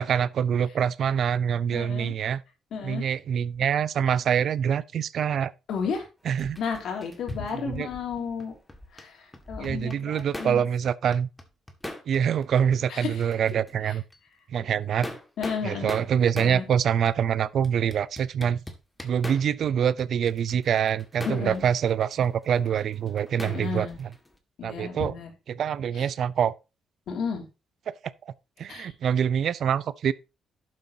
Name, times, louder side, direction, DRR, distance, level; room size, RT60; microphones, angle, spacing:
voice 1, 0.0-2.4 2.8-5.5 6.3-6.6 7.6-7.9 9.6-11.3 12.1-14.0 14.5-15.1 15.6-18.6 19.0-24.1 24.6-25.1 25.5-26.5 27.9-28.0 28.6-30.1, right 8 dB, 65° right, 0.5 m, -25 dB
voice 2, 1.7-2.1 2.7-3.0 5.7-6.1 6.6-8.5 8.9-10.6 12.9-13.2 13.8-14.0 15.4-15.9 16.4-16.7 21.2-21.6 23.5-24.0 24.6-25.3 25.9-26.1 27.1-27.5 28.7-28.9, left 5 dB, 70° left, 3.1 m, -32 dB
sound 1, 6.3-9.1 9.3-10.6 10.9-12.5 12.7-12.8 13.2-13.8 14.1-14.2 14.8-16.6 17.1-17.2 17.6-19.7 20.0-24.3, left 1 dB, 10° left, 1.8 m, -41 dB
11.5 x 7.5 x 2.8 m
cardioid pair, 90°, 0 cm